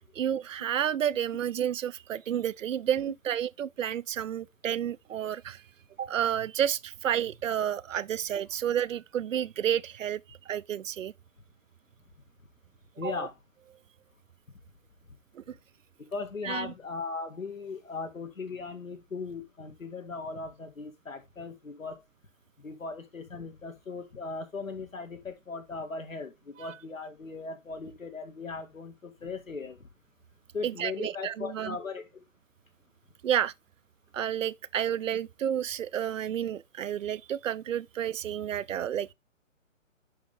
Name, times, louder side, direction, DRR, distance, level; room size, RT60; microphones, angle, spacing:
voice 1, 0.0-5.6 6.0-11.1 13.0-13.3 15.3-15.6 16.4-16.7 26.6-26.7 30.6-31.8 33.2-33.5 34.1-39.1, right 10 dB, 75° right, 0.5 m, -31 dB
voice 2, 13.0-13.3 16.1-22.0 22.6-29.9 30.5-32.2, left 4 dB, 80° left, 2.1 m, -38 dB
10.0 x 3.7 x 3.5 m
figure-of-eight pair, 150°, 39 cm